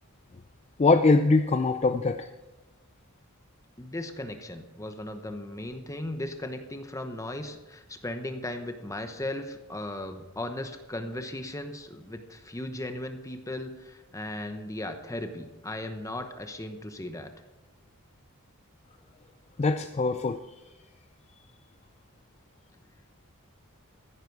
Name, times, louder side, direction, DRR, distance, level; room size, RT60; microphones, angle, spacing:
voice 1, 0.8-2.3 19.6-20.4, left 3 dB, 30° left, 9 dB, 0.4 m, -22 dB
voice 2, 3.8-17.3, left 1 dB, 15° left, 7 dB, 0.9 m, -37 dB
14.0 x 10.5 x 4.6 m, 1.0 s
head